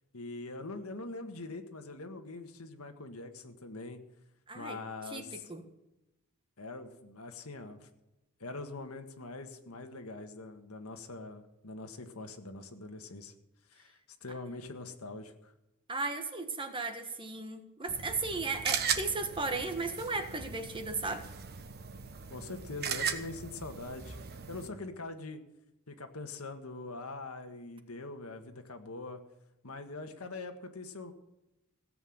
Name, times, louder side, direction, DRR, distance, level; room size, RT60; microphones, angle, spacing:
voice 1, 0.1-4.0 4.5-5.5 6.6-7.9 8.4-13.3 13.7-15.5 22.3-24.2 24.5-25.4 25.9-29.2 29.6-31.1, left 3 dB, 75° left, 6 dB, 1.7 m, -43 dB
voice 2, 4.5-5.6 15.9-21.3, right 3 dB, 25° right, 7 dB, 1.4 m, -36 dB
sound 1, 17.9-24.7, right 7 dB, 45° right, 1.2 m, -38 dB
17.0 x 8.0 x 7.9 m, 0.92 s
head